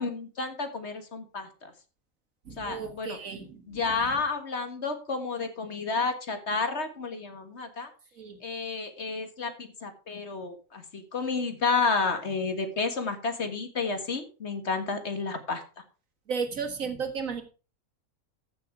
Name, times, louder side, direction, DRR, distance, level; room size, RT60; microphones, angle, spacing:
voice 1, 0.0-1.7 2.6-3.2 3.7-7.9 8.4-15.6, left 4 dB, 55° left, 7 dB, 1.9 m, -31 dB
voice 2, 2.5-4.2 8.2-8.4 16.3-17.4, right 5 dB, 85° right, 6 dB, 2.1 m, -34 dB
14.5 x 6.4 x 4.8 m, 0.36 s
omnidirectional pair, 1.4 m